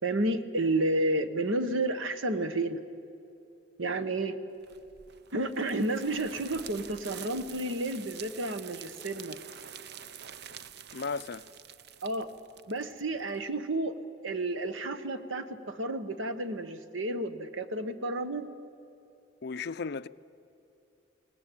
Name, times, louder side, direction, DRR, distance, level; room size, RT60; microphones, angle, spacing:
voice 1, 0.0-2.8 3.8-4.4 5.3-9.4 12.0-12.3 12.7-13.9 14.2-18.5, right 2 dB, 75° right, 1.2 m, -31 dB
sound 1, 4.6-13.5, right 8 dB, 55° right, 0.6 m, -47 dB
voice 2, 10.9-11.5 19.4-20.1, left 4 dB, 55° left, 0.5 m, -35 dB
23.5 x 18.5 x 9.1 m
head